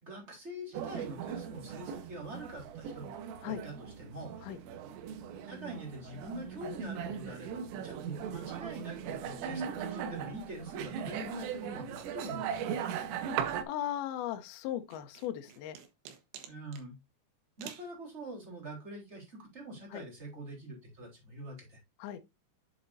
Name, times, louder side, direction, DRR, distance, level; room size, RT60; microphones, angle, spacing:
voice 1, 0.0-3.1 3.4-4.3 5.4-12.8 16.5-17.0 17.6-21.8, right 1 dB, 15° right, 3.4 m, -44 dB
sound 1, 0.7-13.6, right 8 dB, 90° right, 3.6 m, -39 dB
voice 2, 13.4-15.8 19.9-20.0 22.0-22.2, left 11 dB, 85° left, 2.1 m, -37 dB
sound 2, 14.9-16.9 17.6-17.9, right 9 dB, 75° right, 3.4 m, -48 dB
7.8 x 7.1 x 2.6 m
omnidirectional pair, 5.6 m